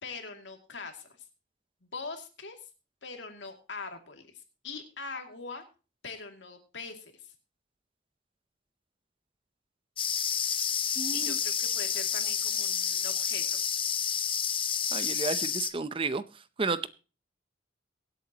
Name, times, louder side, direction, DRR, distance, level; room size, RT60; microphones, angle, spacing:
voice 1, 0.0-1.1 1.9-2.6 3.0-4.2 4.6-5.6 6.0-7.1 11.1-13.6, left 4 dB, 85° left, 4 dB, 2.5 m, -42 dB
sound 1, 10.0-15.7, left 7 dB, 30° left, 0.9 m, -30 dB
voice 2, 11.0-11.4 14.9-16.2 16.6-16.9, right 4 dB, 30° right, 14 dB, 0.6 m, -31 dB
23.5 x 8.3 x 2.9 m, 0.32 s
head